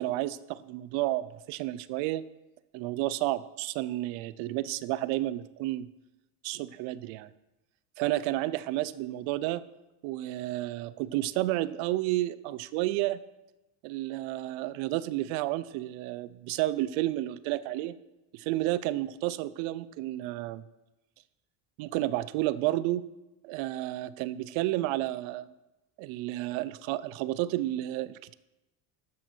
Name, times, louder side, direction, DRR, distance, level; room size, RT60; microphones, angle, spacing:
voice 1, 0.0-2.2 2.7-5.9 6.4-7.3 8.0-9.6 10.0-13.2 13.8-17.9 18.3-20.6 21.8-23.0 23.4-25.5 26.0-28.3, right 16 dB, 70° right, 17 dB, 0.7 m, -31 dB
12.5 x 8.2 x 4.5 m, 0.99 s
supercardioid pair, 100°, 49 cm